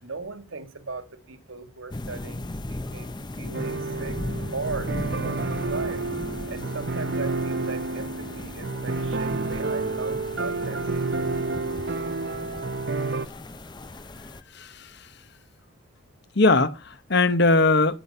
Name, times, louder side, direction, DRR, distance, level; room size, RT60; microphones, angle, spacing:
voice 1, 0.0-4.2 4.5-6.0 6.5-10.9, right 3 dB, 70° right, 2.0 m, -37 dB
sound 1, 1.9-14.4, left 1 dB, 20° left, 0.6 m, -37 dB
sound 2, 3.5-13.3, right 3 dB, 50° right, 0.8 m, -30 dB
voice 2, 14.5-15.1 16.3-18.0, left 3 dB, 50° left, 1.1 m, -21 dB
19.5 x 7.9 x 5.6 m
head